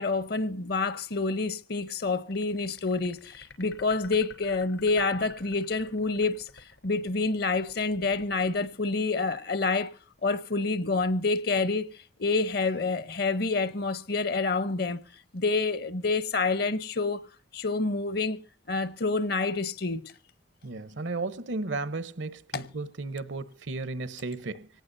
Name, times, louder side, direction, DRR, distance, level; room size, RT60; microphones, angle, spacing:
voice 1, 0.0-9.9 10.2-11.9 12.2-15.0 15.3-17.2 17.5-18.4 18.7-20.1 22.5-22.7, left 3 dB, 55° left, 0.8 m, -28 dB
sound 1, 2.3-9.4, left 5 dB, 80° left, 3.4 m, -51 dB
voice 2, 20.6-24.7, right 3 dB, 75° right, 0.9 m, -34 dB
24.5 x 18.5 x 2.6 m
head